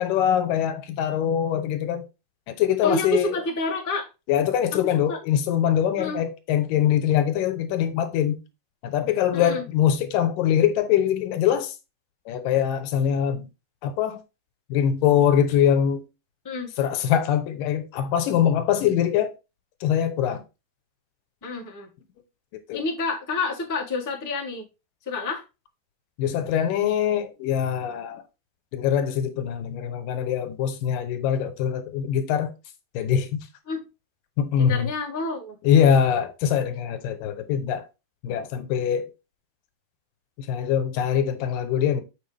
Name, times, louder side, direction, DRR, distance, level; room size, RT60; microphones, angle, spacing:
voice 1, 0.0-2.0 2.5-3.4 4.3-8.4 8.8-11.7 12.3-13.5 13.8-14.2 14.7-16.0 16.8-19.4 19.8-20.4 22.7-22.8 26.2-28.2 28.7-32.5 32.9-33.5 34.4-34.9 35.6-37.9 38.2-39.1 40.4-42.0, left 9 dB, 85° left, 2.6 m, -23 dB
voice 2, 2.8-4.1 4.7-4.8 5.1-5.2 6.0-6.2 9.3-9.6 16.4-16.7 21.4-21.9 22.7-24.7 25.0-25.4 33.7-33.8 34.6-35.6, left 3 dB, 10° left, 0.9 m, -28 dB
7.4 x 5.5 x 3.4 m
omnidirectional pair, 3.8 m